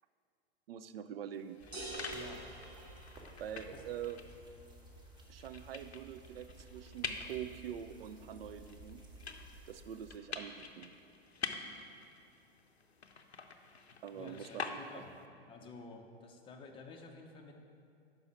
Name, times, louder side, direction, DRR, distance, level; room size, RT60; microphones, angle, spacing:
voice 1, 0.7-1.6 3.4-4.2 5.3-9.0 9.7-10.9 14.0-15.0, right 9 dB, 65° right, 11 dB, 0.4 m, -45 dB
sound 1, 1.3-15.3, left 5 dB, 90° left, 0.5 m, -47 dB
sound 2, 1.6-10.2, right 1 dB, 15° right, 0.9 m, -55 dB
sound 3, 1.7-3.8, right 2 dB, 85° right, 1.8 m, -46 dB
voice 2, 2.1-2.5 3.7-3.8 14.1-15.2 15.5-17.6, left 3 dB, 15° left, 3 dB, 0.6 m, -51 dB
5.4 x 5.4 x 6.0 m, 2.5 s
figure-of-eight pair, 100°, 31 cm